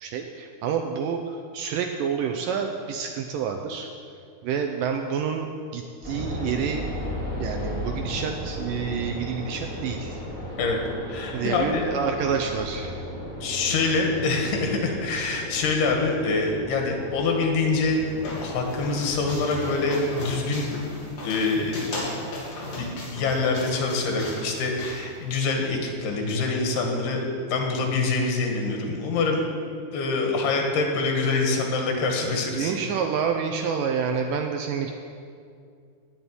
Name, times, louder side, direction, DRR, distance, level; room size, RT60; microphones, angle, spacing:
voice 1, 0.0-3.9 4.4-6.9 7.4-10.2 11.3-13.0 32.5-34.9, right 6 dB, 80° right, 4 dB, 2.0 m, -28 dB
sound 1, 6.0-19.4, equal, 20° left, 3.8 m, -35 dB
voice 2, 11.1-11.8 13.4-18.0 18.4-20.7 21.2-22.0 22.8-27.2 27.5-29.4 29.9-32.7, left 3 dB, 85° left, 2 dB, 3.7 m, -25 dB
sound 2, 17.5-25.7, left 2 dB, 45° left, 3.7 m, -37 dB
15.0 x 5.5 x 9.7 m, 2.3 s
omnidirectional pair, 4.5 m